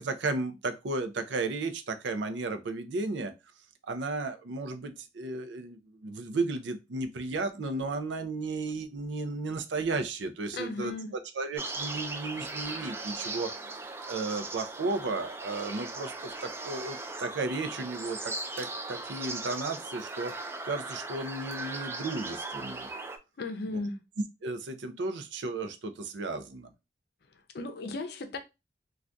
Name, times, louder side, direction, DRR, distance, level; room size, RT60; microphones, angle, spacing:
voice 1, 0.0-3.3 3.8-10.9 11.4-13.5 14.1-20.3 20.6-22.9 23.7-23.8 24.4-26.7, right 3 dB, 85° right, 0.5 m, -34 dB
voice 2, 10.5-11.1 23.4-24.0 27.3-28.4, left 2 dB, 60° left, 0.5 m, -36 dB
sound 1, 11.6-23.2, right 2 dB, 15° right, 0.3 m, -38 dB
2.6 x 2.3 x 3.3 m
head